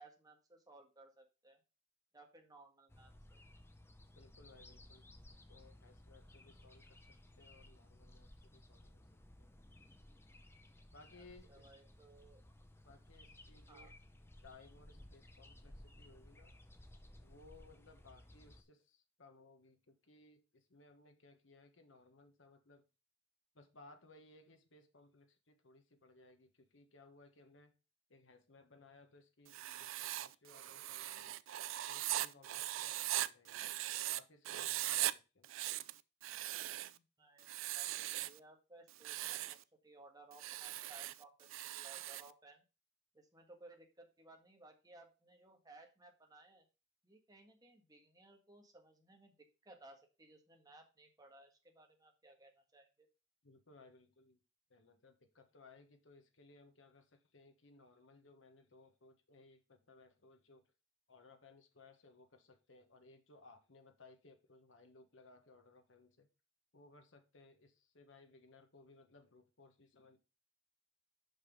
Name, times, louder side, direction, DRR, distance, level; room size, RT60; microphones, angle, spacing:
voice 1, 0.0-1.6 2.1-3.4 11.2-12.4 13.7-13.9 36.8-39.6 39.8-41.5 41.7-42.6 43.1-46.6 47.0-53.1, right 2 dB, 20° right, 3 dB, 1.6 m, -61 dB
sound 1, 2.9-18.6, left 1 dB, 15° left, 0.7 m, -59 dB
voice 2, 4.1-9.1 9.4-9.5 10.9-11.7 12.8-13.9 14.4-16.6 17.2-22.8 23.5-27.7 28.1-31.4 31.9-33.7 34.1-35.5 53.4-54.4 54.7-60.7 61.1-66.3 66.7-70.2, left 3 dB, 75° left, 6 dB, 1.4 m, -63 dB
Writing, 29.5-34.2 34.4-35.1 35.4-37.0 37.4-38.4 38.9-39.6 40.3-42.3, right 15 dB, 85° right, 0.4 m, -40 dB
6.1 x 5.4 x 5.3 m, 0.30 s
head